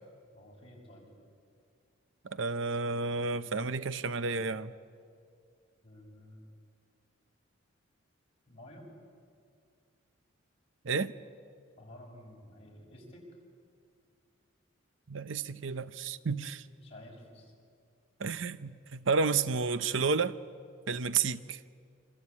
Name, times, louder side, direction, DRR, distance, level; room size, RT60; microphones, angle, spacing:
voice 1, 0.3-1.1 5.8-6.5 8.5-8.9 11.8-13.2 16.7-17.5, left 1 dB, 30° left, 6.8 m, -52 dB
voice 2, 2.2-4.7 10.8-11.1 15.1-16.7 18.2-20.4 20.9-21.6, right 4 dB, 70° right, 0.7 m, -31 dB
27.0 x 25.5 x 8.4 m
head